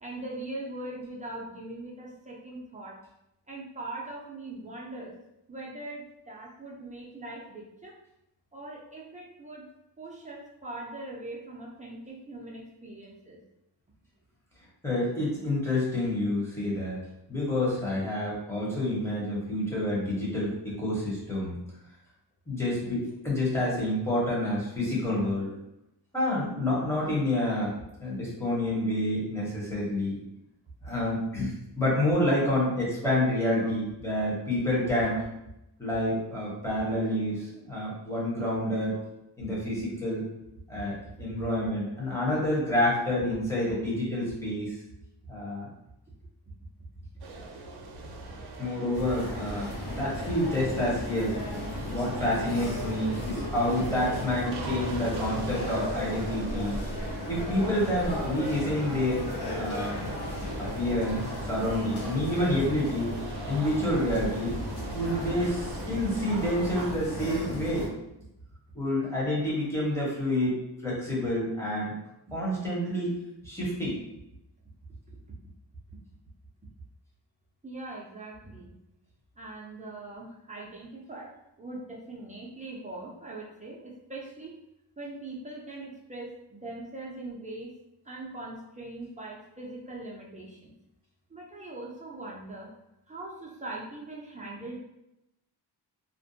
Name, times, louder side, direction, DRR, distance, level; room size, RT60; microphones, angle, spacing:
voice 1, 0.0-3.0 3.5-5.2 5.5-8.0 8.5-9.7 10.0-13.4 32.2-32.5 33.6-33.7 35.1-35.2 38.9-39.0 43.7-43.8 49.2-49.3 57.9-58.0 75.1-75.2 77.6-78.7 79.4-84.5 85.0-87.7 88.0-90.7 91.3-92.7 93.1-94.8, right 2 dB, 20° right, -4 dB, 0.4 m, -41 dB
voice 2, 14.8-17.0 17.3-21.6 22.5-25.5 26.1-27.7 28.0-30.2 30.8-35.2 35.8-38.9 39.4-40.2 40.7-44.8 45.3-45.7 48.6-51.4 51.9-56.8 57.3-59.3 59.5-60.0 60.6-63.1 63.5-64.5 64.9-67.9 68.7-71.9 72.3-73.1 73.4-74.0, left 1 dB, 5° left, -6 dB, 0.8 m, -28 dB
sound 1, 47.2-67.0, right 3 dB, 70° right, 0.5 m, -42 dB
sound 2, 48.9-67.9, left 1 dB, 70° left, 0.8 m, -35 dB
2.5 x 2.1 x 2.6 m, 0.86 s
wide cardioid pair, 135°, 41 cm